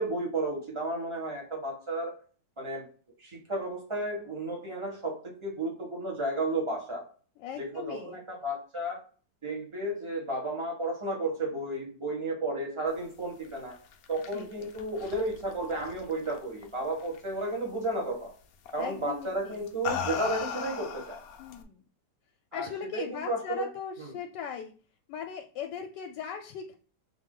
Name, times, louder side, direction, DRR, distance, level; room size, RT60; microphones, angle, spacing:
voice 1, 0.0-2.2 2.6-2.9 3.2-7.1 7.6-9.0 9.4-13.8 14.1-18.3 18.7-21.2 22.5-23.7 24.0-24.1, right 2 dB, 20° right, -2 dB, 1.2 m, -33 dB
voice 2, 7.4-8.2 14.3-14.7 18.7-19.6 21.4-21.8 22.5-24.7 25.1-26.8, left 7 dB, 85° left, 4 dB, 1.2 m, -39 dB
sound 1, 13.7-16.6 17.0-17.4 18.7-18.9 19.5-21.6, left 7 dB, 70° left, 0.9 m, -37 dB
3.7 x 2.9 x 3.7 m, 0.40 s
omnidirectional pair, 1.9 m